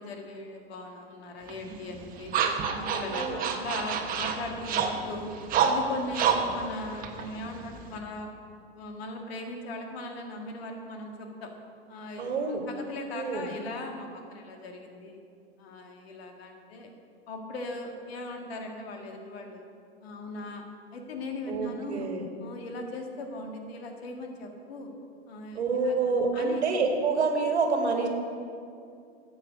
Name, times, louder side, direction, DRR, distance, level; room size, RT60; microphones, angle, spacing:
voice 1, 0.0-2.3 2.7-5.3 5.6-8.3 8.7-11.5 11.9-15.2 15.6-16.9 17.3-19.7 20.0-20.6 20.9-22.1 22.4-24.9 25.3-26.0 26.3-26.6, left 2 dB, 65° left, 3 dB, 2.0 m, -39 dB
sound 1, 1.5-8.0, right 6 dB, 25° right, 1.1 m, -29 dB
voice 2, 12.2-12.7 13.1-13.5 21.5-22.2 25.6-28.1, right 4 dB, 85° right, 3 dB, 1.9 m, -27 dB
12.0 x 8.0 x 5.1 m, 2.4 s
hypercardioid pair, 125°, 33 cm